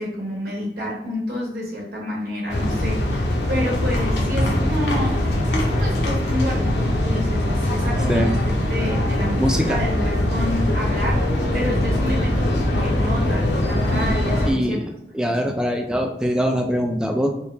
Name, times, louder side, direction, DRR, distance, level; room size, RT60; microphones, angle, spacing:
voice 1, 0.0-5.2 5.5-14.8 15.4-15.6, equal, 60° right, -2 dB, 1.1 m, -29 dB
sound 1, 2.5-14.5, left 1 dB, 75° left, 0.8 m, -22 dB
voice 2, 9.4-9.8 14.5-14.8 15.1-17.3, equal, 5° right, 3 dB, 0.3 m, -22 dB
4.7 x 2.1 x 3.3 m, 0.83 s
head